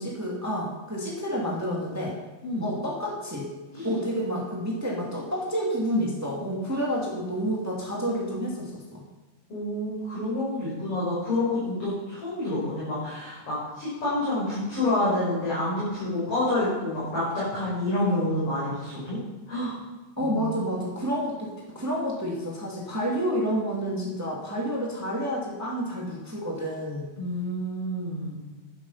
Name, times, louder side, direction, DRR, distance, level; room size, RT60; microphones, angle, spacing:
voice 1, 0.0-2.1 2.6-3.5 3.8-9.0 20.2-27.1, equal, 5° right, -3 dB, 2.2 m, -29 dB
voice 2, 9.5-19.2 19.5-19.7 20.2-20.7 27.2-28.4, left 1 dB, 50° left, -11 dB, 6.4 m, -28 dB
11.5 x 10.5 x 5.8 m, 1.2 s
omnidirectional pair, 3.3 m